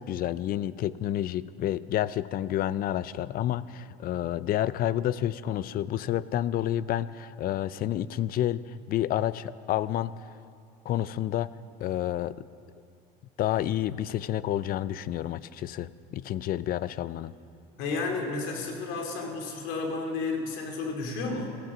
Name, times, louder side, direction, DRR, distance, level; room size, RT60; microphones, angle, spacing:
voice 1, 0.0-10.1 10.9-11.5 11.8-12.5 13.4-17.3, left 12 dB, 45° left, 18 dB, 0.4 m, -29 dB
voice 2, 17.8-21.6, left 3 dB, 75° left, 2 dB, 2.7 m, -32 dB
15.0 x 14.5 x 6.0 m, 2.5 s
cardioid pair, 120°, 21 cm